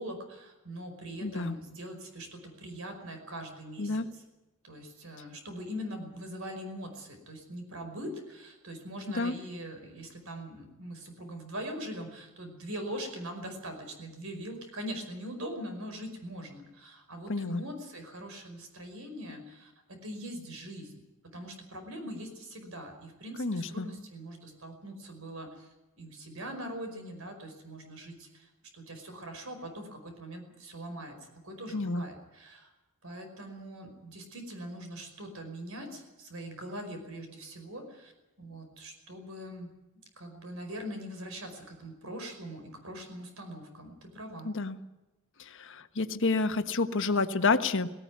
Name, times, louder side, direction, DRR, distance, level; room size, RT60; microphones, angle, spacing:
voice 1, 0.0-4.2 4.6-25.7 26.0-31.1 31.4-32.7 33.0-38.1 38.4-39.7 40.2-44.5, equal, 70° right, 5 dB, 5.3 m, -42 dB
voice 2, 1.2-1.6 3.8-4.1 9.1-9.3 17.3-17.6 23.4-23.9 31.7-32.0 44.4-44.8 45.6-47.9, left 3 dB, 60° left, 9 dB, 1.3 m, -29 dB
18.0 x 18.0 x 9.5 m, 1.0 s
head